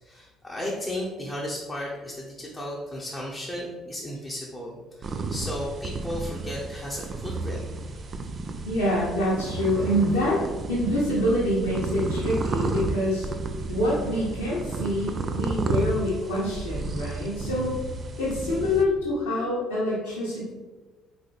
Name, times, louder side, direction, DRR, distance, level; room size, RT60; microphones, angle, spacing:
voice 1, 0.0-7.6, left 1 dB, 15° left, -4 dB, 0.8 m, -34 dB
sound 1, 5.0-18.8, right 3 dB, 35° right, 0.4 m, -32 dB
voice 2, 8.6-10.4 10.7-13.3 13.7-17.8 18.2-20.5, left 1 dB, 70° left, -9 dB, 1.0 m, -26 dB
4.1 x 3.9 x 3.2 m, 1.3 s
figure-of-eight pair, 50°, 0 cm